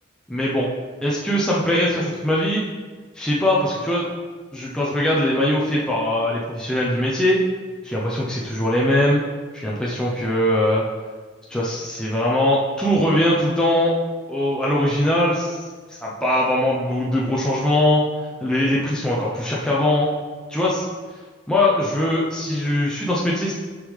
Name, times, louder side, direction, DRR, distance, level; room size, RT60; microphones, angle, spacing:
voice 1, 0.3-0.7 1.0-2.7 3.1-4.1 4.5-7.4 7.8-9.2 9.5-10.8 11.5-13.9 14.3-15.6 16.0-18.0 18.4-20.1 20.5-20.8 21.5-23.5, left 1 dB, 5° left, -6 dB, 0.7 m, -21 dB
6.7 x 5.3 x 3.3 m, 1.5 s
head